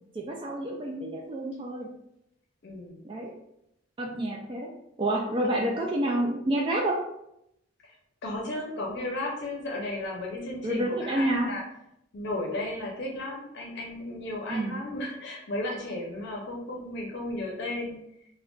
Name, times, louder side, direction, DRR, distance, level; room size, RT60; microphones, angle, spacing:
voice 1, 0.1-1.9 3.0-3.3 4.0-4.7 5.0-7.0 10.6-11.5 14.5-14.8, right 1 dB, 25° right, -1 dB, 0.3 m, -28 dB
voice 2, 2.6-3.0 5.4-5.8 7.8-7.9 8.2-11.6 12.1-18.0, left 1 dB, 60° left, -2 dB, 0.6 m, -34 dB
2.4 x 2.2 x 3.6 m, 0.80 s
head